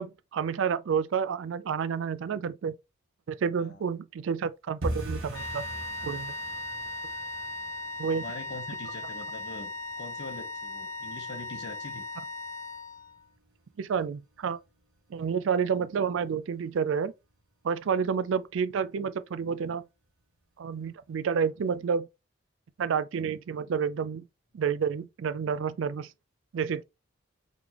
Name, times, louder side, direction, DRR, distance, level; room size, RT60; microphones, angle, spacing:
voice 1, 0.0-2.8 3.3-5.6 6.0-6.3 8.0-8.2 13.8-14.6 15.1-17.1 17.6-19.8 20.6-22.1 22.8-24.3 24.5-26.1 26.5-26.8, right 6 dB, 65° right, 0.3 m, -29 dB
sound 1, 4.8-15.5 15.8-16.5 16.7-17.0 17.3-17.7 18.0-18.1 18.6-19.1 19.5-19.6 20.1-20.2, right 1 dB, 85° right, 1.6 m, -42 dB
sound 2, 5.3-13.2, left 1 dB, 90° left, 0.9 m, -38 dB
voice 2, 6.5-6.9 8.1-9.7 10.0-12.1 17.8-18.0, left 2 dB, 55° left, 0.9 m, -43 dB
3.9 x 3.3 x 2.9 m
head